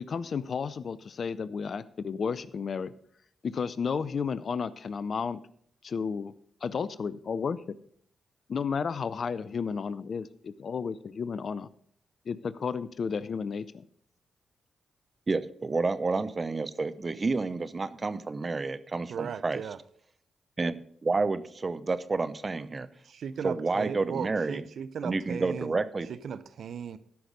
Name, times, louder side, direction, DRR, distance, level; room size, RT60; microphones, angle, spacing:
voice 1, 0.0-2.9 3.4-5.4 5.8-6.3 6.6-7.8 8.5-11.7 12.3-13.8, left 6 dB, 60° left, 17 dB, 0.5 m, -32 dB
voice 2, 15.3-19.6 20.6-22.9 23.4-24.6 25.0-26.1, right 3 dB, 40° right, 14 dB, 0.7 m, -30 dB
voice 3, 19.1-19.8 23.0-25.8 26.1-27.0, right 7 dB, 70° right, 15 dB, 0.5 m, -37 dB
13.0 x 5.9 x 5.2 m, 0.63 s
hypercardioid pair, 40°, 0 cm